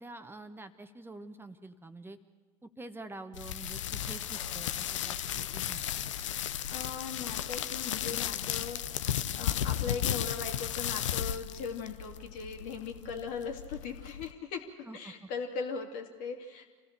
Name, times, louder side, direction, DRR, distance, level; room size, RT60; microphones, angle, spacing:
voice 1, 0.0-2.2 2.6-6.0 14.9-15.3, right 2 dB, 15° right, 8 dB, 1.3 m, -47 dB
sound 1, 3.3-14.3, left 10 dB, 75° left, 0.6 m, -35 dB
voice 2, 6.7-8.8 9.1-16.8, left 5 dB, 60° left, 3 dB, 2.6 m, -39 dB
26.5 x 16.0 x 6.8 m, 1.4 s
figure-of-eight pair, 65°, 16 cm